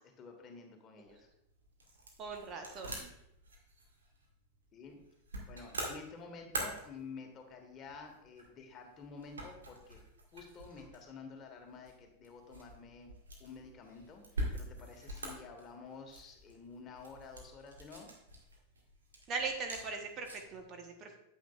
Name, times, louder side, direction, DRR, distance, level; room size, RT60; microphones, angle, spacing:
voice 1, 0.2-1.3 4.7-5.0 5.5-10.0 10.3-13.1 13.4-18.1, left 4 dB, 30° left, 3 dB, 1.4 m, -50 dB
sound 1, 1.0-20.6, right 1 dB, 70° right, 1.8 m, -46 dB
voice 2, 2.2-3.1 19.3-21.2, right 4 dB, 30° right, 4 dB, 1.0 m, -40 dB
9.1 x 8.4 x 2.4 m, 0.80 s
figure-of-eight pair, 90°, 0 cm